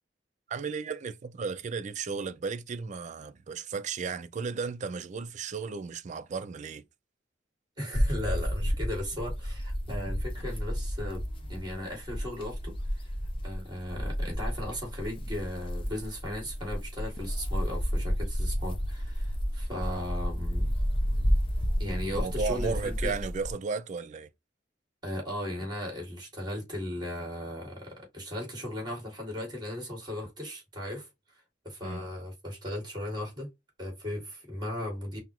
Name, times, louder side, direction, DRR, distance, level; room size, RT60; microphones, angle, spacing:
voice 1, 0.5-6.8 22.1-24.3 31.8-32.1, right 5 dB, 40° right, 0.4 m, -34 dB
voice 2, 7.8-13.1 13.4-20.7 21.8-23.1 25.0-31.1 31.6-33.5 33.8-35.2, left 1 dB, 25° right, 1.9 m, -37 dB
sound 1, 7.9-23.5, equal, 30° left, 0.7 m, -31 dB
5.6 x 2.0 x 2.9 m
head